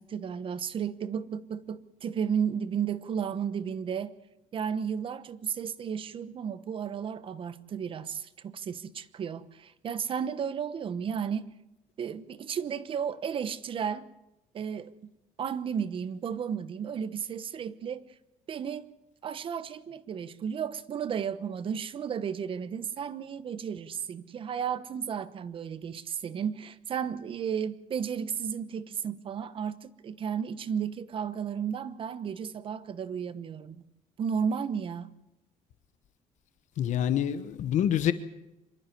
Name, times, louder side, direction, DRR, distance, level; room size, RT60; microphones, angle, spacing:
voice 1, 0.0-4.1 4.5-11.5 12.0-14.1 14.5-15.1 15.4-18.0 18.5-18.9 19.2-33.8 34.2-35.1, right 7 dB, 40° right, 1.0 m, -33 dB
voice 2, 36.8-38.1, left 10 dB, 60° left, 1.1 m, -26 dB
25.5 x 11.5 x 9.9 m
cardioid pair, 145°, 14 cm